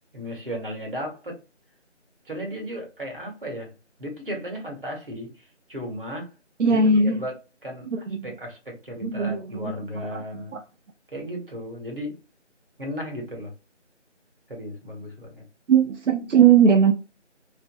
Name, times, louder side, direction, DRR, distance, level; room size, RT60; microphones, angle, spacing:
voice 1, 0.1-1.4 2.3-3.7 4.0-6.3 6.7-6.8 7.0-7.3 7.6-10.5 11.1-12.2 12.8-13.5 14.5-15.4, equal, 50° right, 1.0 m, -35 dB
voice 2, 6.6-7.2 7.9-8.3 9.0-10.2 10.5-10.6 15.7-16.9, right 6 dB, 75° right, 0.5 m, -19 dB
2.5 x 2.0 x 2.5 m
figure-of-eight pair, 175°, 36 cm